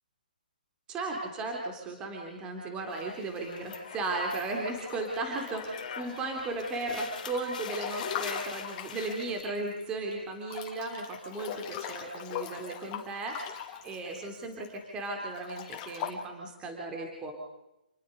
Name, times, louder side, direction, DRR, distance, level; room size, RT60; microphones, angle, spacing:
voice 1, 0.9-17.3, right 2 dB, 15° right, 2 dB, 3.1 m, -36 dB
sound 1, 2.9-9.4, left 7 dB, 55° left, 3.7 m, -44 dB
Breathing / Bathtub (filling or washing) / Splash splatter, 4.6-6.2 6.7-9.8 10.1-10.2 10.5-14.7 15.2-16.1, left 9 dB, 25° left, 2.8 m, -40 dB
28.0 x 20.0 x 5.3 m, 0.91 s
hypercardioid pair, 155°, 5 cm